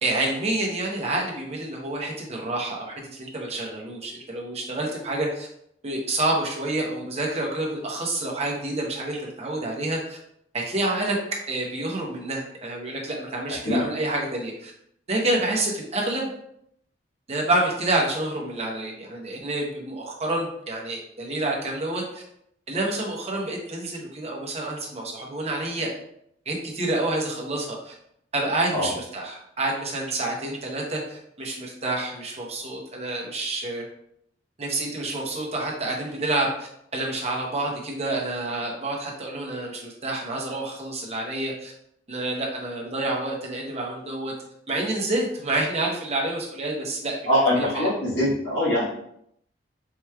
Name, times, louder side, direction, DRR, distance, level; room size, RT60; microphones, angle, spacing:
voice 1, 0.0-5.5 5.8-10.2 10.5-11.2 11.5-14.7 15.1-16.3 17.3-22.2 22.7-25.9 26.5-27.9 28.3-33.8 34.6-41.7 42.1-44.3 44.7-47.2 47.6-47.9, right 2 dB, 35° right, -1 dB, 0.8 m, -28 dB
voice 2, 47.2-48.8, left 1 dB, 70° left, -10 dB, 1.4 m, -22 dB
4.5 x 3.0 x 2.3 m, 0.73 s
head